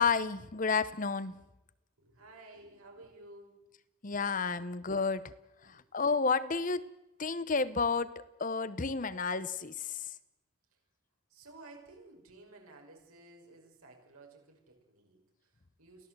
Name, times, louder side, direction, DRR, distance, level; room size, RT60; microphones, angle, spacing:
voice 1, 0.0-1.3 4.0-5.3 5.6-6.9 7.2-10.1, left 5 dB, 35° left, 15 dB, 0.7 m, -31 dB
voice 2, 2.0-3.7 5.6-5.8 10.7-10.8 11.3-16.1, right 2 dB, 85° right, 1 dB, 6.0 m, -55 dB
23.5 x 16.0 x 7.9 m, 0.95 s
head